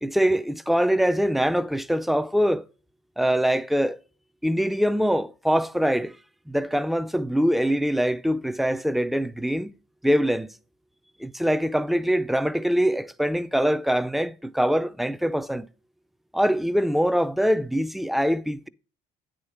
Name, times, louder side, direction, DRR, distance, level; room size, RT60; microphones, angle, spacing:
voice 1, 0.0-2.6 3.2-4.0 4.4-6.2 6.5-9.7 10.0-10.6 11.2-15.7 16.3-18.7, equal, ahead, 0.4 m, -23 dB
9.3 x 5.1 x 5.7 m
cardioid pair, 110°, 17 cm